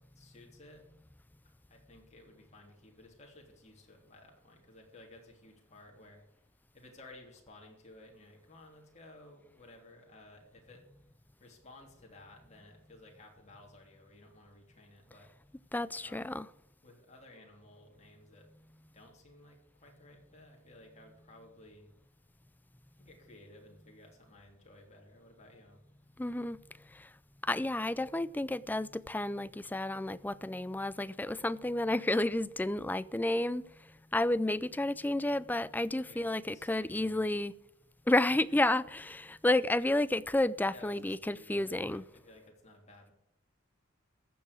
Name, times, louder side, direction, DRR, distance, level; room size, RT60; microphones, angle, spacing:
voice 1, 0.1-0.8 1.7-6.2 6.7-10.9 11.4-15.3 16.0-16.3 16.8-18.5 18.9-21.9 23.0-25.8 36.1-37.2 40.7-43.1, left 2 dB, 35° left, 3.3 m, -56 dB
voice 2, 15.7-16.5 26.2-26.6 27.5-33.6 34.1-37.6 38.1-42.0, left 1 dB, 10° left, 0.4 m, -31 dB
15.0 x 6.7 x 8.4 m
head